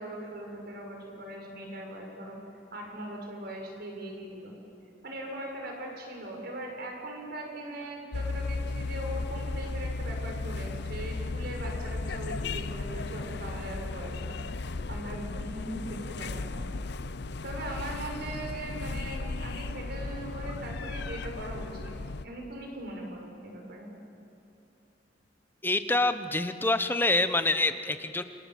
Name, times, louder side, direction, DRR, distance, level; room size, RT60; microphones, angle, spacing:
voice 1, 0.0-2.4 2.7-4.5 5.0-16.6 17.4-21.9 22.2-23.9, right 1 dB, 55° right, 1 dB, 6.5 m, -40 dB
sound 1, 8.1-22.3, left 3 dB, 60° left, 0.7 m, -35 dB
voice 2, 25.6-28.2, left 2 dB, 10° left, 10 dB, 1.0 m, -26 dB
29.0 x 26.5 x 7.7 m, 2.9 s
head